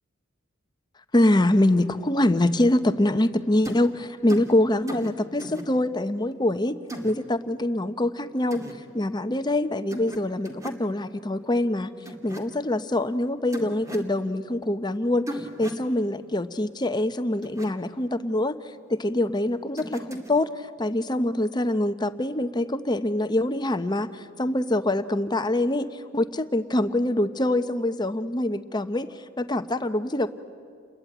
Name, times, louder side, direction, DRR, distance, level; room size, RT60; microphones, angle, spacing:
voice 1, 1.1-6.8 7.0-8.6 8.9-11.9 12.2-15.3 15.6-18.6 18.9-25.9 26.1-29.1 29.4-30.3, left 1 dB, 20° left, 11 dB, 0.9 m, -24 dB
sound 1, 3.6-3.9 4.3-4.5 4.9-5.1 5.4-5.6 6.9-7.1 8.5-8.7 9.9-10.2 10.4-10.8 12.1-12.4 13.5-14.1 15.3-15.8 17.4-17.7 19.8-20.3, right 1 dB, 15° right, 2.4 m, -36 dB
29.0 x 21.5 x 9.2 m, 2.2 s
head